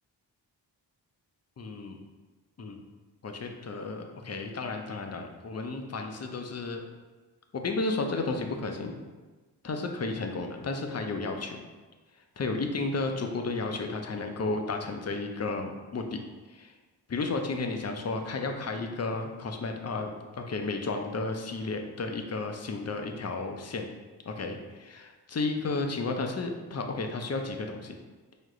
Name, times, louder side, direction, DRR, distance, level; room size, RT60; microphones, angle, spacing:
voice 1, 1.6-2.0 2.6-2.8 3.2-6.8 7.5-8.9 9.6-11.6 12.4-16.2 16.5-16.7 17.1-23.9 24.3-28.0, left 3 dB, 35° left, 4 dB, 0.6 m, -33 dB
4.9 x 2.1 x 3.7 m, 1.3 s
cardioid pair, 45°, 44 cm